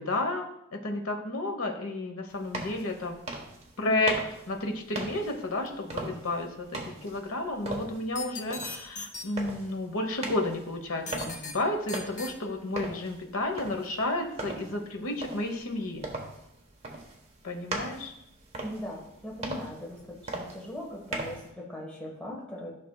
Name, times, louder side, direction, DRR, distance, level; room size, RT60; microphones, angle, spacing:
voice 1, 0.0-3.2 3.8-4.2 4.5-16.0 17.4-18.1, left 2 dB, 85° left, 4 dB, 1.1 m, -31 dB
sound 1, 2.3-21.5, right 2 dB, 30° right, 1.1 m, -40 dB
sound 2, 8.2-9.2 11.1-11.5 11.9-12.3, left 4 dB, 35° left, 0.7 m, -37 dB
voice 2, 18.6-20.0 20.3-22.7, left 1 dB, 5° left, -3 dB, 1.4 m, -39 dB
12.0 x 5.9 x 2.3 m, 0.80 s
head